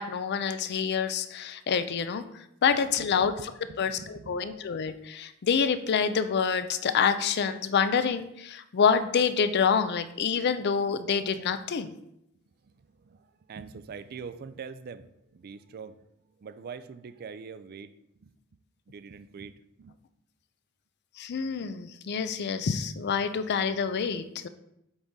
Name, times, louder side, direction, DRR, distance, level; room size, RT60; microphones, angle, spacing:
voice 1, 0.0-3.5 3.8-11.9 21.2-24.5, left 6 dB, 55° left, 12 dB, 0.4 m, -27 dB
voice 2, 3.0-4.6 12.6-16.0 16.4-17.9 18.2-18.3 18.9-20.0, right 5 dB, 50° right, 13 dB, 0.4 m, -44 dB
7.9 x 3.7 x 4.0 m, 0.82 s
head